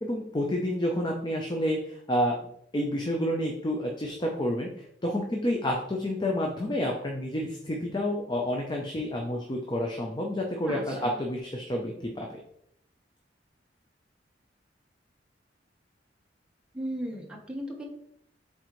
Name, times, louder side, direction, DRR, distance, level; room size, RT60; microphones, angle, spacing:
voice 1, 0.0-2.4 2.7-12.4, equal, 25° left, 0 dB, 0.7 m, -29 dB
voice 2, 10.6-11.2 16.7-17.8, equal, 5° right, -1 dB, 1.2 m, -36 dB
7.8 x 3.9 x 3.1 m, 0.70 s
head